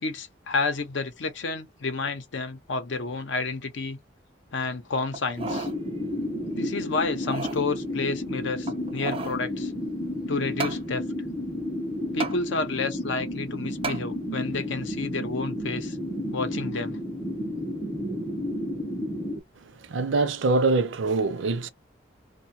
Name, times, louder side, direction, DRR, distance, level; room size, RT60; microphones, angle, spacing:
voice 1, 0.0-4.0 4.5-5.7 6.5-9.7 10.3-11.0 12.1-16.0 16.3-17.0, left 3 dB, 80° left, 0.6 m, -30 dB
sound 1, 5.1-5.8 6.2-6.3 7.0-7.6 8.6-9.4 10.6-10.8 12.2-12.4 13.8-14.0 14.6-14.7, right 4 dB, 30° right, 0.4 m, -33 dB
sound 2, 5.4-19.4, left 1 dB, 15° left, 0.6 m, -32 dB
voice 2, 19.6-21.7, right 3 dB, 80° right, 0.5 m, -24 dB
2.6 x 2.2 x 2.7 m
head